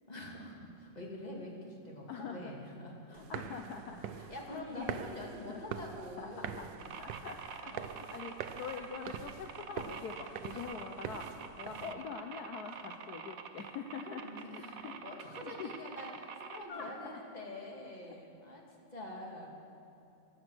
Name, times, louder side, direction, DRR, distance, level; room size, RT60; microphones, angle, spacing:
voice 1, 0.1-3.2 4.3-6.7 7.7-7.9 10.2-10.7 11.6-12.0 12.6-12.7 14.1-18.6 18.9-19.5, left 1 dB, 25° left, -1 dB, 2.2 m, -46 dB
voice 2, 2.1-2.5 3.0-5.0 5.5-5.6 6.2-6.7 7.0-14.2 14.5-14.9 15.4-15.7 16.5-17.2, left 6 dB, 65° left, 3 dB, 1.3 m, -44 dB
sound 1, 3.2-11.9, right 9 dB, 85° right, 1.3 m, -45 dB
sound 2, 6.8-16.6, right 7 dB, 60° right, 1.1 m, -46 dB
16.0 x 11.5 x 6.2 m, 2.8 s
omnidirectional pair, 1.9 m